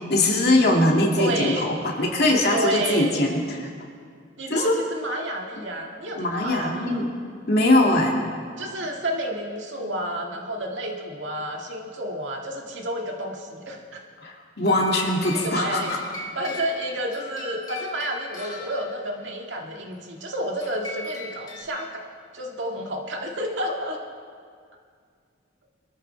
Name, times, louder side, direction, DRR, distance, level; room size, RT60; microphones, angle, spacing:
voice 1, 0.1-3.7 4.5-4.8 6.2-7.0 7.5-8.3 14.2-16.0, left 1 dB, 55° left, -1 dB, 2.3 m, -21 dB
voice 2, 1.2-1.7 2.5-3.2 4.4-7.1 8.6-14.1 15.3-15.9 16.3-24.0, right 1 dB, 70° right, 0 dB, 2.0 m, -30 dB
sound 1, 14.7-19.2 20.6-21.6, left 2 dB, 20° left, 2.8 m, -39 dB
25.0 x 13.5 x 3.4 m, 2.1 s
head